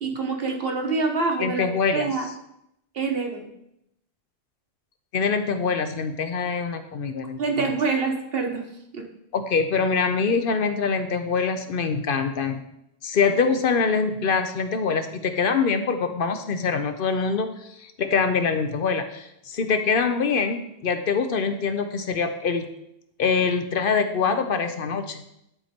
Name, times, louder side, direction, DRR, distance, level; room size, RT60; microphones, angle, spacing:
voice 1, 0.0-2.2 2.9-3.5 7.4-8.6 8.9-9.0, right 4 dB, 60° right, 2 dB, 1.4 m, -26 dB
voice 2, 1.4-2.1 5.1-7.7 9.3-12.6 13.0-22.7 23.2-25.2, left 5 dB, 60° left, 8 dB, 0.8 m, -24 dB
10.0 x 4.4 x 4.3 m, 0.79 s
omnidirectional pair, 1.1 m